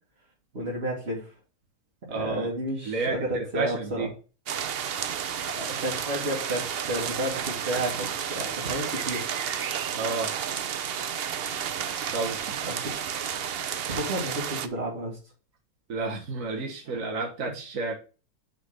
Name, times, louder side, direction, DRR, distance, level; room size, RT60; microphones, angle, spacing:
voice 1, 0.5-1.3 2.1-4.1 5.4-9.3 12.7-12.9 13.9-15.2, right 1 dB, 35° right, -5 dB, 2.7 m, -31 dB
voice 2, 2.1-2.5 2.8-4.1 9.9-10.3 12.1-12.6 15.9-17.9, right 3 dB, 50° right, 1 dB, 1.6 m, -31 dB
sound 1, 4.5-14.7, right 8 dB, 85° right, 0.5 m, -31 dB
6.4 x 4.1 x 6.4 m, 0.35 s
omnidirectional pair, 1.8 m